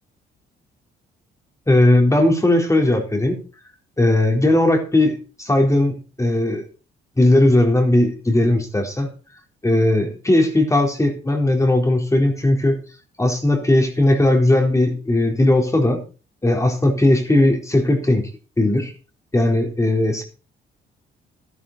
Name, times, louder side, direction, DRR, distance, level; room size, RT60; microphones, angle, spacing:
voice 1, 1.7-3.4 4.0-6.6 7.2-9.1 9.6-12.8 13.2-16.0 16.4-18.3 18.6-18.9 19.3-20.2, left 1 dB, 15° left, 3 dB, 4.1 m, -17 dB
13.0 x 12.0 x 4.4 m, 0.34 s
cardioid pair, 90°, 20 cm